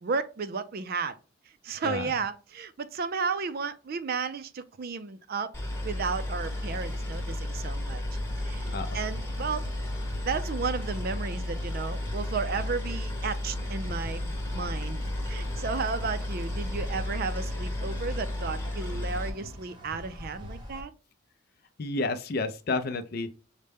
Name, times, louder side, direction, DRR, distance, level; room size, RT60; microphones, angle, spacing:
voice 1, 0.0-1.2 1.6-5.5 5.8-8.0 8.4-9.6 10.2-15.0 15.3-20.9, right 5 dB, 50° right, 0.4 m, -33 dB
Boat Water vehicle, 5.5-19.3, left 1 dB, 15° left, 1.0 m, -33 dB
sound 1, 6.4-20.8, equal, 25° right, 0.8 m, -44 dB
voice 2, 21.8-23.3, left 3 dB, 50° left, 0.5 m, -30 dB
6.4 x 2.1 x 3.4 m
head